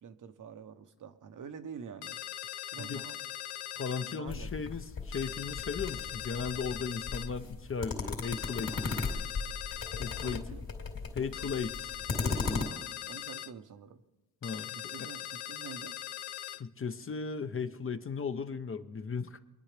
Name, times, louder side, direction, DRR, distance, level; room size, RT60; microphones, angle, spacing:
voice 1, 0.0-2.2 2.7-3.2 4.1-4.7 8.7-8.9 10.2-10.7 12.5-14.0 14.7-16.0, right 6 dB, 55° right, 9 dB, 0.9 m, -47 dB
sound 1, 2.0-4.2 5.1-7.3 8.2-10.4 11.3-13.5 14.4-16.6, left 13 dB, 85° left, 0.5 m, -41 dB
voice 2, 3.8-8.7 10.0-10.6 11.1-12.7 14.4-15.1 16.5-19.4, left 5 dB, 35° left, 10 dB, 0.7 m, -37 dB
sound 2, 4.3-12.6, left 4 dB, 55° left, 2.8 m, -37 dB
23.5 x 10.0 x 3.3 m, 1.1 s
cardioid pair, 95°, 38 cm